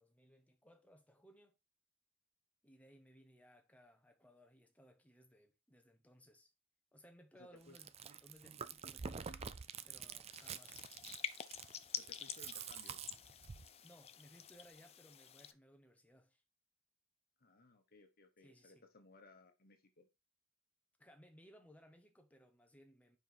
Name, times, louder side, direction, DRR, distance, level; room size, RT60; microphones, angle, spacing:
voice 1, 0.0-1.6 2.6-6.5 6.9-7.9 8.2-9.3 9.8-10.8 13.8-16.4 18.4-18.9 21.0-23.2, equal, 5° left, 1.0 m, -63 dB
voice 2, 7.3-7.8 12.0-13.0 17.4-20.1, left 2 dB, 45° left, 1.3 m, -62 dB
Chewing mastication, 7.6-13.7, right 6 dB, 30° right, 0.4 m, -48 dB
sound 1, 10.3-15.5, left 8 dB, 30° left, 0.4 m, -48 dB
5.5 x 4.7 x 4.6 m
head